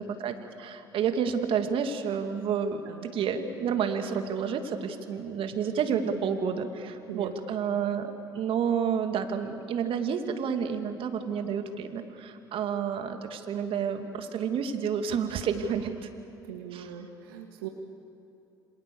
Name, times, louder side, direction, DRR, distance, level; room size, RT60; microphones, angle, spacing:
voice 1, 0.0-16.1 16.7-16.9, right 7 dB, 50° right, 6 dB, 2.4 m, -30 dB
voice 2, 16.4-17.7, right 11 dB, 75° right, 3 dB, 1.9 m, -40 dB
28.0 x 26.0 x 7.0 m, 2.7 s
hypercardioid pair, 60°, 12 cm